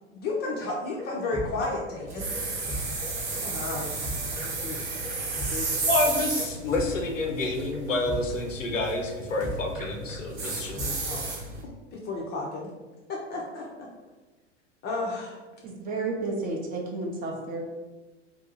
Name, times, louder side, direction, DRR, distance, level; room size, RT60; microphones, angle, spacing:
voice 1, 0.0-2.3 3.3-3.9 4.3-5.0 5.5-5.8 11.1-12.7 13.1-13.9 14.8-15.4, left 3 dB, 30° left, -2 dB, 0.5 m, -33 dB
sound 1, 0.7-11.3, equal, 5° right, 0.9 m, -38 dB
sound 2, 2.1-11.6, right 3 dB, 65° right, 0.9 m, -33 dB
voice 2, 5.9-11.0, left 2 dB, 90° left, 2 dB, 0.7 m, -29 dB
voice 3, 15.6-17.6, right 3 dB, 25° right, 0 dB, 0.5 m, -31 dB
2.6 x 2.4 x 3.8 m, 1.2 s
figure-of-eight pair, 90°, 37 cm